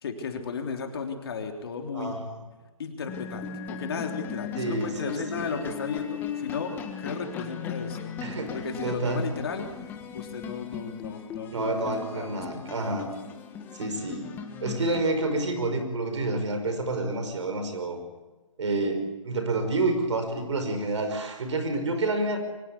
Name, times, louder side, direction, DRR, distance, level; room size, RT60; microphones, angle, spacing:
voice 1, 0.0-2.2 2.8-6.7 7.0-8.2 8.5-11.5 11.8-12.8, left 5 dB, 45° left, 4 dB, 3.3 m, -35 dB
voice 2, 1.9-2.4 4.6-5.7 8.2-8.5 8.8-9.3 11.5-13.1 13.7-14.3 14.6-18.0 18.6-22.4, right 2 dB, 55° right, 7 dB, 5.5 m, -29 dB
sound 1, 3.1-15.0, left 7 dB, 10° left, 1.6 m, -38 dB
24.0 x 18.5 x 8.5 m, 1.2 s
hypercardioid pair, 155°, 18 cm